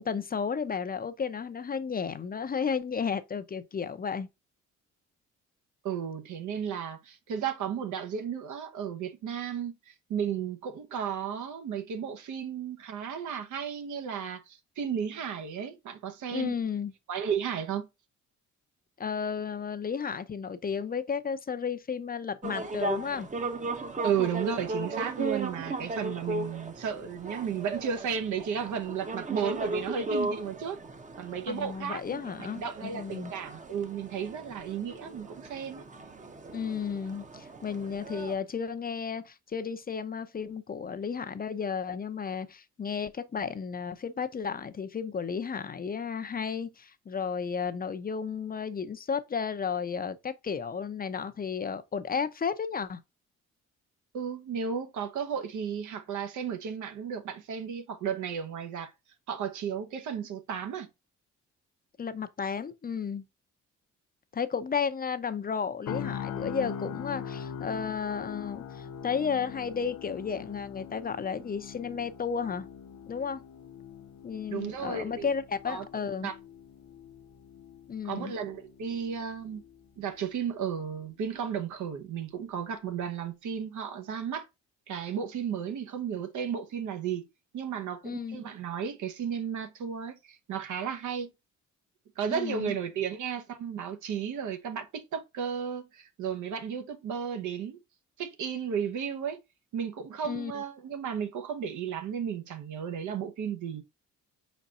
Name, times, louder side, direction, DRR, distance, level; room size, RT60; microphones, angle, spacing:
voice 1, 0.0-4.3 16.3-16.9 19.0-23.3 31.5-33.3 36.5-53.0 62.0-63.2 64.3-72.7 73.1-73.4 74.2-76.3 77.9-78.3 88.0-88.4 92.3-92.8 100.3-100.6, left 6 dB, 30° left, 0.6 m, -33 dB
voice 2, 5.8-16.5 17.1-17.9 24.0-30.8 31.2-35.8 54.1-58.9 59.3-60.9 74.5-75.3 75.7-75.9 76.2-76.3 78.0-79.6 80.0-84.5 84.9-87.3 87.5-91.3 92.2-97.8 98.2-99.4 99.7-103.8, right 7 dB, 75° right, 1.0 m, -34 dB
sound 1, 22.4-38.4, right 2 dB, 25° right, 0.8 m, -37 dB
sound 2, 65.9-79.9 80.2-80.4, left 8 dB, 70° left, 0.8 m, -42 dB
5.1 x 4.1 x 2.4 m
cardioid pair, 90°, 30 cm